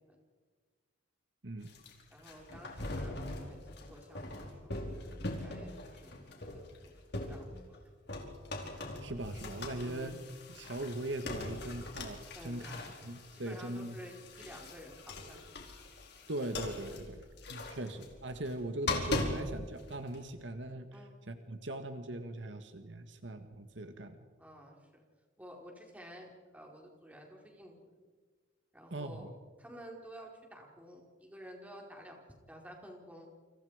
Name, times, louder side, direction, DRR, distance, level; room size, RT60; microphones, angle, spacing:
sound 1, 1.6-7.8 8.1-20.3, left 2 dB, 60° left, 4.3 m, -41 dB
voice 1, 2.1-3.6 3.9-4.9 5.3-7.0 7.3-7.9 9.7-10.2 12.3-13.0 13.3-15.5 17.3-17.5 20.9-21.2 24.4-25.0 25.4-27.9 28.7-32.2 32.5-33.3, equal, 10° right, 0 dB, 4.6 m, -52 dB
voice 2, 8.7-10.1 10.5-14.0 16.3-17.2 17.5-20.9 21.3-24.2 28.9-29.3, right 1 dB, 65° right, 8 dB, 1.6 m, -40 dB
29.0 x 26.5 x 5.0 m, 1.5 s
head